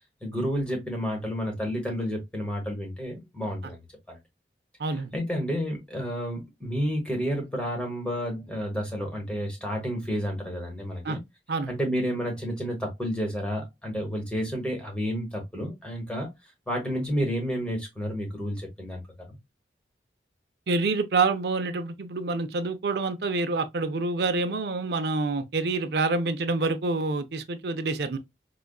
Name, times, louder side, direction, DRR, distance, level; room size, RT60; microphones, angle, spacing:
voice 1, 0.2-3.8 4.1-4.2 4.9-11.2 11.7-16.3 16.7-19.0 19.3-19.4, equal, 5° left, 1.1 m, -30 dB
voice 2, 4.8-5.1 11.0-11.2 11.5-11.7 20.7-28.2, right 3 dB, 65° right, 0.5 m, -27 dB
4.9 x 2.3 x 2.3 m
head